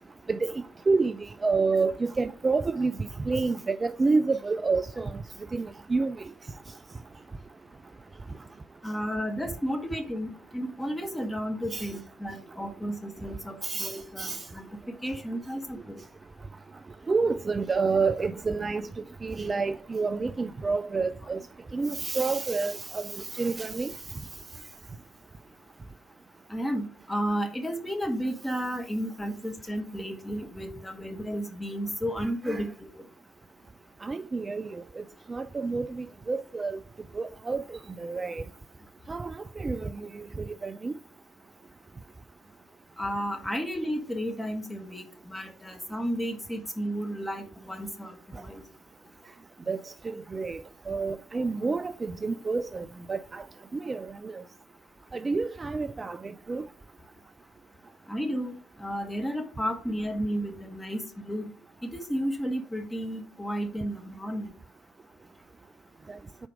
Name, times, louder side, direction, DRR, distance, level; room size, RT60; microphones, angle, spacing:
voice 1, 0.3-5.2 5.5-6.2 11.7-12.0 13.6-14.4 17.1-18.9 19.2-21.4 21.7-23.9 32.2-32.6 34.0-34.8 35.3-36.8 37.2-38.4 39.1-40.9 49.7-53.4 53.7-54.4 55.1-56.6, right 4 dB, 25° right, 0.3 m, -29 dB
voice 2, 8.8-16.0 26.5-33.0 43.0-48.6 58.1-58.5 58.8-61.5 61.8-64.5, equal, 10° left, 1.5 m, -33 dB
5.1 x 4.4 x 4.9 m
hypercardioid pair, 55°, 0 cm